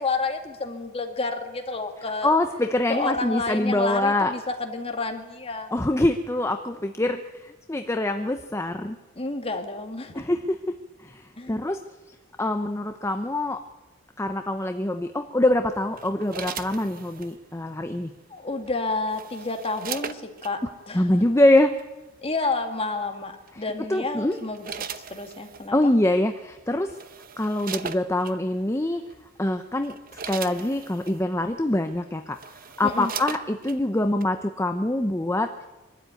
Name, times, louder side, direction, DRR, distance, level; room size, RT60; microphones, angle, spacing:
voice 1, 0.0-2.4 2.9-5.7 9.2-10.3 11.4-11.6 18.3-20.6 20.9-21.2 22.2-25.8 32.8-33.1, left 3 dB, 30° left, 4 dB, 2.1 m, -30 dB
voice 2, 2.2-4.3 5.7-9.0 10.1-10.7 11.0-11.2 11.5-11.8 12.4-13.6 14.2-18.1 20.9-21.7 23.9-24.4 25.7-26.9 27.4-29.0 29.4-32.4 32.8-35.7, left 1 dB, 15° left, 7 dB, 0.7 m, -24 dB
sound 1, 16.0-17.3 18.7-20.5 21.6-21.8 23.5-23.8 24.3-25.7 26.5-26.6 26.9-28.4 29.1-29.3 29.7-31.2 31.9-32.0 32.3-33.8 34.2-34.3, right 7 dB, 45° right, 0.9 m, -38 dB
24.0 x 13.0 x 9.1 m, 1.1 s
head